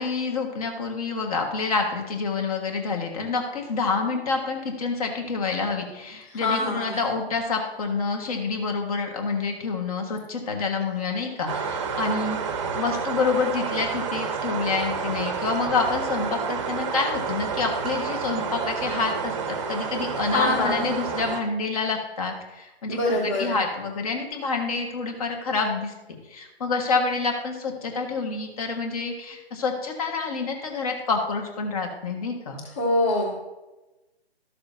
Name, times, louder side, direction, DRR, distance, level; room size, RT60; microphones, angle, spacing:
voice 1, 0.0-12.4 12.7-25.9 26.3-32.6, left 4 dB, 35° left, 3 dB, 1.6 m, -28 dB
voice 2, 6.4-7.0 20.3-20.9 22.9-23.6 32.8-33.3, left 2 dB, 20° left, -9 dB, 1.9 m, -24 dB
sound 1, 11.5-21.4, right 6 dB, 30° right, 0.9 m, -29 dB
13.5 x 6.6 x 2.7 m, 1.0 s
hypercardioid pair, 155°, 32 cm